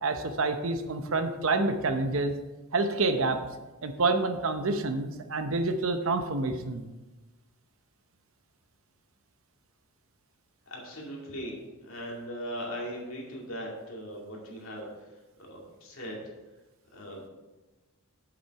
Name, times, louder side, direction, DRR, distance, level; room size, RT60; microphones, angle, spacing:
voice 1, 0.0-2.3 2.7-3.4 3.8-6.9, right 3 dB, 65° right, 8 dB, 0.8 m, -28 dB
voice 2, 10.7-11.5 11.8-14.9 15.4-16.2 16.9-17.2, equal, 65° left, -2 dB, 2.4 m, -39 dB
7.7 x 7.2 x 4.7 m, 1.1 s
head